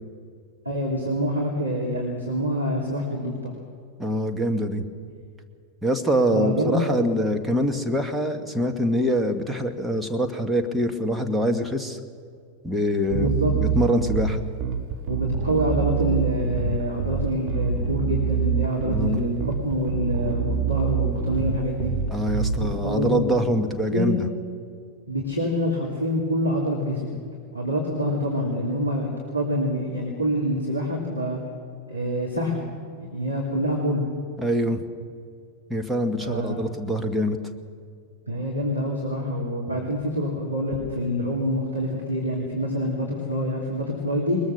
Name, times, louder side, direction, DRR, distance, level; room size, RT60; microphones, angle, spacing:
voice 1, 0.6-3.5 6.3-7.1 13.1-13.5 15.1-21.9 22.6-23.2 23.9-24.2 25.1-27.2 27.5-31.4 31.9-32.6 33.0-34.1 36.2-36.7 38.3-44.4, equal, 90° right, -4 dB, 3.3 m, -26 dB
voice 2, 4.0-4.8 5.8-12.0 12.6-14.4 18.9-19.2 22.1-24.3 34.4-34.8 35.7-37.4, equal, 5° right, 3 dB, 1.7 m, -24 dB
Bass guitar, 13.1-22.7, right 7 dB, 40° right, 2.4 m, -26 dB
21.5 x 21.0 x 6.7 m, 2.3 s
figure-of-eight pair, 90°, 0 cm